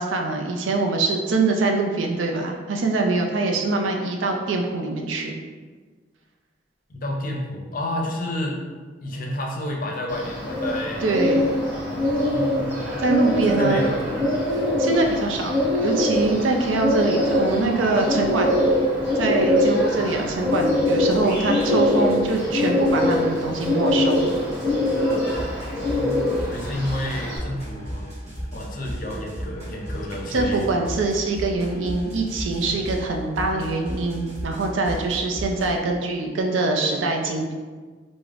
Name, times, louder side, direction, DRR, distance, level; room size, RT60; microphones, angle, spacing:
voice 1, 0.0-5.4 11.0-11.4 13.0-13.9 14.8-15.5 15.8-18.6 19.2-24.2 30.3-37.6, right 3 dB, 80° right, 2 dB, 0.5 m, -23 dB
voice 2, 6.9-8.6 9.0-11.2 11.9-13.0 13.3-14.0 25.8-28.1 28.5-30.7, left 1 dB, 45° left, 0 dB, 0.5 m, -30 dB
Bird, 10.1-27.4, left 1 dB, 5° right, 1.1 m, -23 dB
sound 1, 20.4-35.8, equal, 35° right, 1.3 m, -36 dB
4.9 x 2.1 x 2.4 m, 1.4 s
head